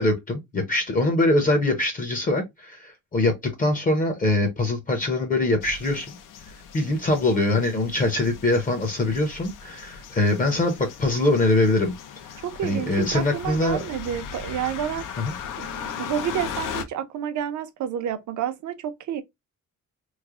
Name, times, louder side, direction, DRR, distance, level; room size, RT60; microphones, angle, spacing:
voice 1, 0.0-6.1 6.7-11.9 12.6-13.8 15.2-15.3, left 2 dB, 25° left, 0.6 m, -23 dB
sound 1, 5.6-16.8, left 7 dB, 85° left, 0.6 m, -38 dB
voice 2, 12.4-15.0 15.6-19.2, right 10 dB, 65° right, 0.6 m, -29 dB
3.2 x 2.0 x 3.5 m
cardioid pair, 165°, 31 cm